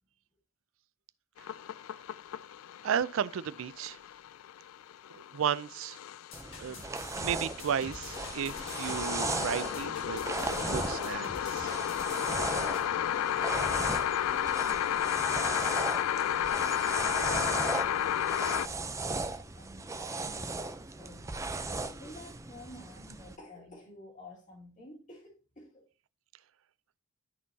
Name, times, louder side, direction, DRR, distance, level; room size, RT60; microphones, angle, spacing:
sound 1, 1.4-18.7, left 10 dB, 80° left, 0.3 m, -32 dB
voice 1, 2.8-4.0 5.1-6.0 6.6-6.8 7.2-11.7, right 8 dB, 70° right, 0.4 m, -34 dB
sound 2, 6.3-12.9, left 3 dB, 65° left, 1.5 m, -48 dB
sound 3, 6.3-23.3, right 3 dB, 15° right, 0.5 m, -37 dB
voice 2, 15.4-16.1 16.5-21.3 21.9-25.8, left 1 dB, 35° left, 2.2 m, -52 dB
13.0 x 4.4 x 2.7 m
head